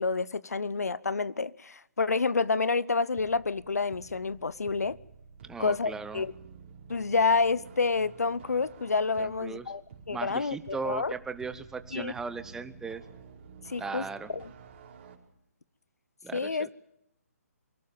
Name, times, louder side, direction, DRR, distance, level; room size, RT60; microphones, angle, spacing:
voice 1, 0.0-5.0 5.6-6.3 6.9-9.8 10.1-11.1 11.9-12.1 13.7-14.1 14.3-14.5 16.3-16.7, left 4 dB, 75° left, 0.9 m, -28 dB
sound 1, 3.1-15.1, right 6 dB, 40° right, 5.0 m, -51 dB
voice 2, 5.4-6.2 9.2-9.7 10.1-13.0 13.8-14.3 16.2-16.7, right 4 dB, 5° right, 1.0 m, -37 dB
23.5 x 18.0 x 7.1 m
figure-of-eight pair, 140°, 9 cm